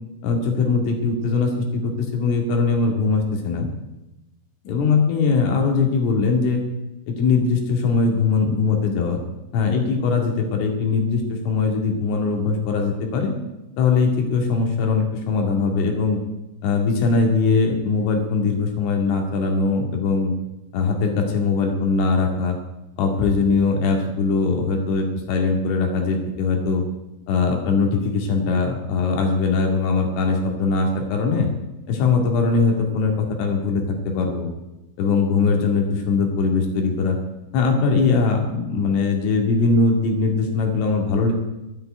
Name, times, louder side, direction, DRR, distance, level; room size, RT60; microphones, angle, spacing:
voice 1, 0.2-3.7 4.7-6.6 7.1-9.2 9.5-13.3 13.8-16.2 16.6-20.3 20.7-22.6 23.0-26.8 27.3-31.5 31.9-34.5 35.0-37.2 37.5-41.3, left 4 dB, 85° left, 2 dB, 4.8 m, -21 dB
11.5 x 9.3 x 9.1 m, 0.97 s
omnidirectional pair, 5.6 m